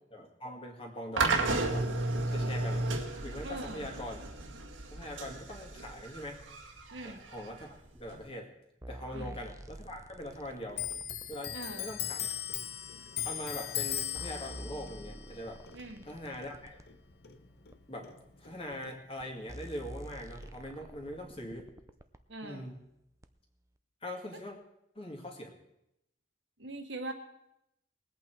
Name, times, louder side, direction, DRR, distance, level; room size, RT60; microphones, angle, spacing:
voice 1, 0.1-1.9 2.3-2.8 3.2-4.2 4.9-6.4 7.0-7.7 7.9-8.5 8.9-10.8 11.3-12.3 13.2-15.6 16.0-16.8 17.9-18.1 18.4-21.7 22.4-22.8 24.0-24.5 24.9-25.5, left 1 dB, 30° left, 1 dB, 2.1 m, -42 dB
sound 1, 1.2-8.2, right 2 dB, 90° right, 1.8 m, -33 dB
voice 2, 3.4-3.9 6.9-7.2 9.1-9.4 11.5-11.8 15.7-16.1 22.3-22.6 24.3-24.4 26.6-27.1, right 2 dB, 75° right, 4 dB, 1.7 m, -42 dB
sound 2, 8.8-11.5 12.5-12.6 13.4-13.5 13.9-16.9 17.7-17.8 18.7-18.8 19.2-19.3 19.5-22.2 23.2-23.3, right 1 dB, 15° right, 0.5 m, -48 dB
Clock, 10.7-17.8 18.0-19.4 19.6-20.5, left 10 dB, 55° left, 0.9 m, -39 dB
20.5 x 8.5 x 4.6 m, 0.83 s
head